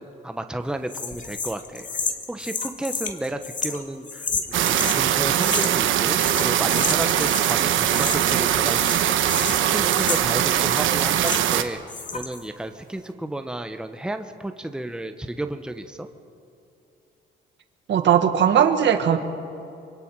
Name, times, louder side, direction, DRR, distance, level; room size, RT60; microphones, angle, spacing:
voice 1, 0.0-1.9 2.3-9.1 9.5-11.8 12.1-16.1, right 1 dB, 5° right, 7 dB, 1.0 m, -32 dB
sound 1, 0.9-5.0 5.4-5.9 6.1-7.5 7.8-8.4 8.7-11.6 11.9-12.4, left 4 dB, 40° left, 2.0 m, -31 dB
sound 2, 4.5-11.6, right 11 dB, 80° right, 1.1 m, -21 dB
voice 2, 17.9-19.2, right 9 dB, 65° right, 7 dB, 1.6 m, -18 dB
25.0 x 22.5 x 4.8 m, 2.7 s
cardioid pair, 90°, 20 cm